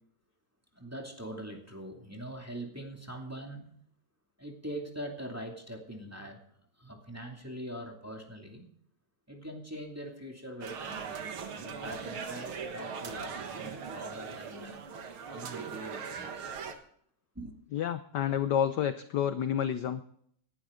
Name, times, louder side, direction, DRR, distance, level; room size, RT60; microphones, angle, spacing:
voice 1, 0.7-3.8 4.4-6.4 6.8-8.7 9.3-11.2 11.5-14.8 15.3-16.6 17.3-17.5, right 1 dB, 5° right, 1 dB, 2.3 m, -43 dB
sound 1, 10.6-16.7, right 6 dB, 75° right, 2.3 m, -40 dB
voice 2, 17.7-20.1, left 9 dB, 65° left, 11 dB, 1.1 m, -29 dB
19.0 x 12.0 x 3.8 m, 0.65 s
omnidirectional pair, 2.4 m